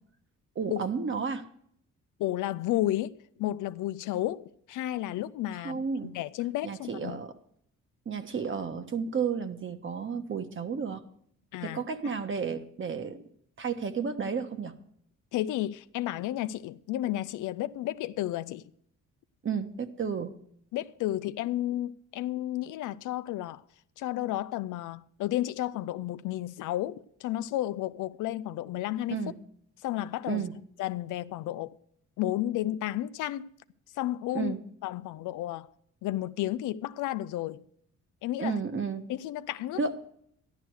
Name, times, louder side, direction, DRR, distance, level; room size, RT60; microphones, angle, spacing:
voice 1, 0.5-1.5 5.6-6.1 6.6-7.3 8.0-11.0 11.6-13.2 13.6-14.7 19.4-20.3 29.1-29.3 30.3-30.5 34.3-34.6 38.4-39.0 39.7-40.0, right 6 dB, 40° right, 1.3 m, -32 dB
voice 2, 2.2-7.2 11.5-11.8 15.3-18.6 20.7-23.6 24.0-29.2 29.8-30.4 30.8-31.8 32.2-33.5 34.0-34.5 34.8-35.7 36.0-37.6 38.2-38.6 39.1-39.8, left 14 dB, 85° left, 0.6 m, -32 dB
12.5 x 11.5 x 4.8 m
cardioid pair, 90°, 30 cm